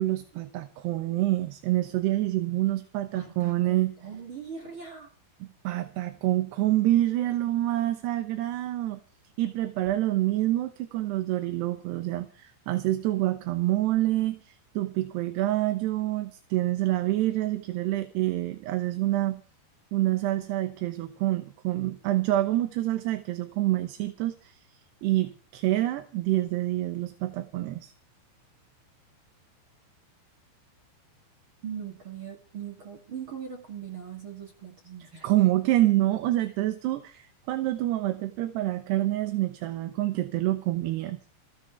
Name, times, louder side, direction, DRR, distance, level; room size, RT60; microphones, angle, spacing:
voice 1, 0.0-3.9 5.6-9.0 9.4-19.4 19.9-24.6 25.0-27.9 35.2-41.2, right 15 dB, 75° right, 9 dB, 2.9 m, -27 dB
voice 2, 3.1-5.1 31.6-35.6, right 8 dB, 40° right, 3 dB, 2.0 m, -40 dB
28.5 x 10.5 x 3.5 m, 0.36 s
omnidirectional pair, 5.3 m